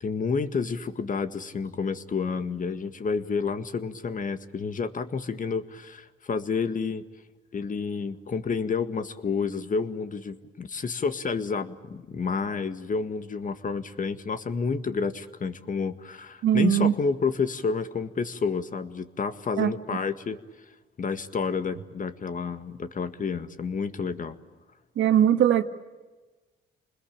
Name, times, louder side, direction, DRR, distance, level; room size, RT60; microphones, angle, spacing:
voice 1, 0.0-7.0 7.5-20.4 21.0-24.4, left 5 dB, 40° left, 10 dB, 1.9 m, -30 dB
voice 2, 16.4-16.9 19.6-19.7 25.0-25.6, right 10 dB, 75° right, 9 dB, 1.8 m, -20 dB
28.5 x 21.0 x 8.9 m, 1.2 s
cardioid pair, 90°, 20 cm